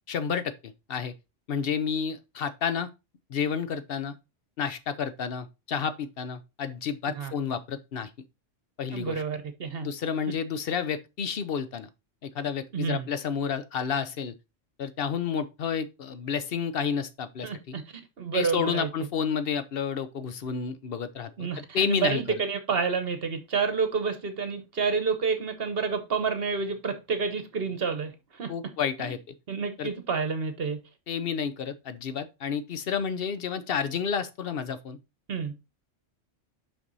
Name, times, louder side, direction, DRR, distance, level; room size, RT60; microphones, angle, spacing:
voice 1, 0.1-0.5 0.9-1.1 1.5-2.9 3.3-4.1 4.6-8.1 8.8-9.2 9.8-11.9 12.2-14.3 14.8-17.7 18.3-21.5 21.7-22.2 28.5-29.2 29.8-29.9 31.1-35.0, left 7 dB, 55° left, 0.9 m, -30 dB
voice 2, 8.9-9.9 12.7-13.1 17.4-17.8 18.2-18.9 21.4-28.7 29.0-29.1 29.5-30.8 35.3-35.5, right 5 dB, 55° right, 1.2 m, -29 dB
5.9 x 5.4 x 4.0 m
omnidirectional pair, 1.3 m